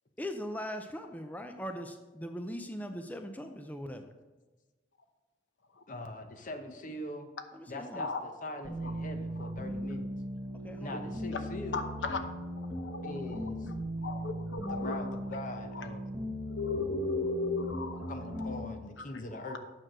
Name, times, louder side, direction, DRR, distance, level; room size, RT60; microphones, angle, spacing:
voice 1, 0.2-4.1 7.5-8.1 10.5-11.2, equal, 10° left, 6 dB, 0.5 m, -40 dB
voice 2, 5.9-7.3 7.7-10.1 10.8-11.9 13.0-13.7 14.6-16.1 18.1-19.6, left 1 dB, 45° left, 6 dB, 1.0 m, -42 dB
sound 1, 8.6-18.6, equal, 10° right, 1.1 m, -38 dB
voice 3, 11.7-12.2 12.8-13.1 13.4-13.5 14.0-15.0 16.5-18.1, left 3 dB, 80° left, 7 dB, 0.9 m, -34 dB
9.0 x 6.2 x 6.1 m, 1.2 s
head